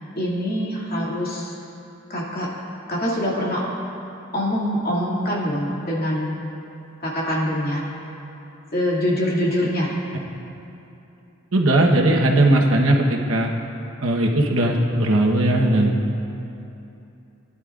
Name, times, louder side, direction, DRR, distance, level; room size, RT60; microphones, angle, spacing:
voice 1, 0.2-1.6 2.1-2.5 2.9-3.6 4.3-6.4 7.0-7.8 8.7-9.9, equal, 45° left, -6 dB, 2.4 m, -24 dB
voice 2, 11.5-13.5 14.0-15.9, right 1 dB, 80° right, 0 dB, 1.2 m, -18 dB
19.5 x 11.0 x 2.5 m, 2.9 s
head